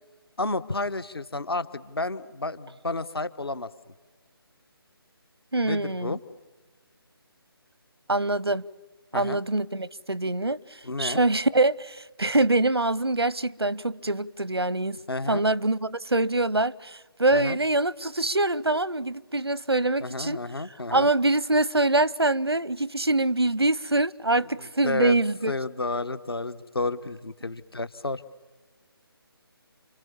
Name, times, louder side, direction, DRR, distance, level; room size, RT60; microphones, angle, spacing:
voice 1, 0.4-3.7 5.6-6.2 9.1-9.4 10.8-11.2 15.1-15.4 17.3-17.6 20.0-21.1 24.6-25.2 25.5-28.2, left 2 dB, 70° left, 1.3 m, -31 dB
voice 2, 5.5-6.2 8.1-8.6 9.1-10.6 11.0-15.0 15.3-20.4 20.9-25.5, right 2 dB, 90° right, 0.7 m, -24 dB
29.5 x 26.0 x 7.2 m
figure-of-eight pair, 150°, 13 cm